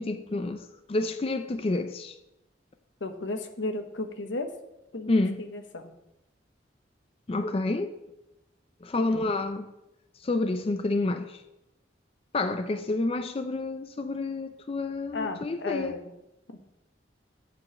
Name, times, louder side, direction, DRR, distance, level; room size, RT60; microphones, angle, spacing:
voice 1, 0.0-2.2 5.1-5.4 7.3-8.0 8.8-9.7 10.2-11.4 12.3-16.0, left 2 dB, 30° left, 0.4 m, -29 dB
voice 2, 3.0-4.5 4.9-5.9 9.0-9.2 15.1-16.1, left 2 dB, 85° left, 0.9 m, -34 dB
8.3 x 5.0 x 6.9 m
head